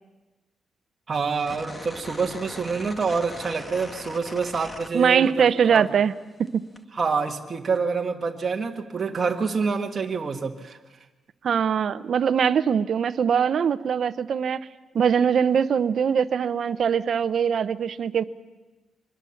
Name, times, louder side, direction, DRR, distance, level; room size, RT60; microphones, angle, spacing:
voice 1, 1.1-5.9 6.9-10.8, right 5 dB, 35° right, 2 dB, 1.7 m, -27 dB
sound 1, 1.4-5.5 5.8-6.8, left 1 dB, 20° left, 1.8 m, -40 dB
voice 2, 4.9-6.1 6.5-6.6 11.4-14.7 14.9-18.2, right 7 dB, 60° right, 11 dB, 0.8 m, -22 dB
24.5 x 21.0 x 7.2 m, 1.2 s
cardioid pair, 115°, 0 cm